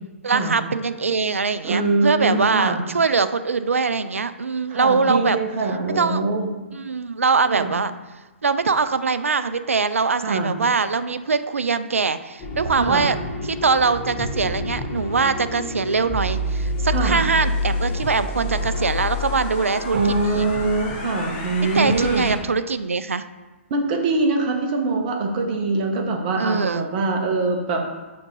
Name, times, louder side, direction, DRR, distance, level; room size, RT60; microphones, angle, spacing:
voice 1, 0.2-5.4 5.9-6.2 6.7-7.9 8.4-13.2 13.4-20.7 21.7-23.2 26.4-26.9, right 4 dB, 75° right, 13 dB, 0.4 m, -22 dB
voice 2, 1.6-2.8 4.7-6.5 7.5-7.7 10.2-10.5 12.8-13.1 16.9-17.2 19.9-22.2 23.7-27.8, right 3 dB, 40° right, 2 dB, 1.1 m, -23 dB
sound 1, 12.4-22.3, left 1 dB, 35° left, 1.6 m, -28 dB
5.7 x 3.7 x 5.4 m, 1.2 s
figure-of-eight pair, 120°, 7 cm